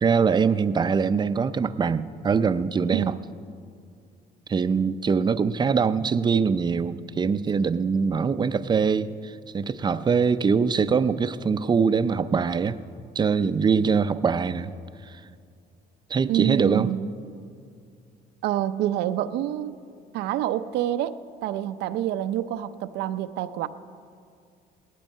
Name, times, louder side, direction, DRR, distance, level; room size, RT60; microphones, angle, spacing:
voice 1, 0.0-3.1 4.5-12.8 13.2-14.7 15.1-15.2 16.1-16.9, right 5 dB, 25° right, 13 dB, 0.5 m, -23 dB
voice 2, 2.9-3.3 16.3-17.1 18.4-19.8 20.1-23.7, right 12 dB, 85° right, 12 dB, 0.6 m, -27 dB
18.0 x 12.5 x 5.5 m, 2.3 s
cardioid pair, 110°, 17 cm